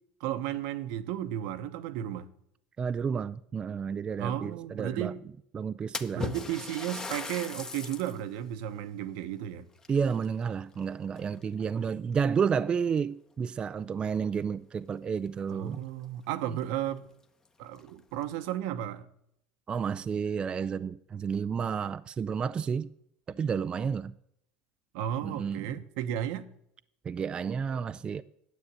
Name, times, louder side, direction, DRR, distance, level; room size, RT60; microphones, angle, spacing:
voice 1, 0.2-2.3 4.2-5.2 6.1-9.6 15.5-17.1 17.6-19.1 24.9-26.5, right 11 dB, 75° right, 1.0 m, -34 dB
voice 2, 2.8-5.1 5.5-6.3 9.9-15.8 19.7-22.9 23.3-24.1 25.2-25.8 27.0-28.2, right 6 dB, 25° right, 0.4 m, -31 dB
Splash splatter, 5.9-8.2 8.7-8.8 9.8-10.8 11.1-11.6 12.4-12.5 13.0-13.1 15.3-15.4 15.7-15.8 16.3-16.4 16.8-16.9 17.7-18.2, left 4 dB, 15° left, 0.9 m, -39 dB
9.8 x 7.9 x 8.5 m
supercardioid pair, 130°, 4 cm